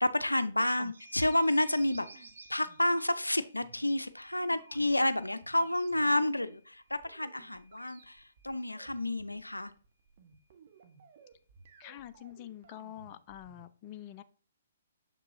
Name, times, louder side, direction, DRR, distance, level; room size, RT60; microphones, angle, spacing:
voice 1, 0.0-2.2 2.5-9.7, left 1 dB, 90° left, 0.4 m, -30 dB
sound 1, 0.9-3.4 6.0-6.2, right 4 dB, 70° right, 0.7 m, -54 dB
sound 2, 1.0-9.1 10.4-10.5 10.7-11.8, equal, 15° right, 1.7 m, -61 dB
sound 3, 1.5-13.7, right 5 dB, 45° right, 1.1 m, -59 dB
voice 2, 11.8-14.2, left 12 dB, 30° left, 0.4 m, -46 dB
6.8 x 5.3 x 2.6 m
figure-of-eight pair, 125°, 0 cm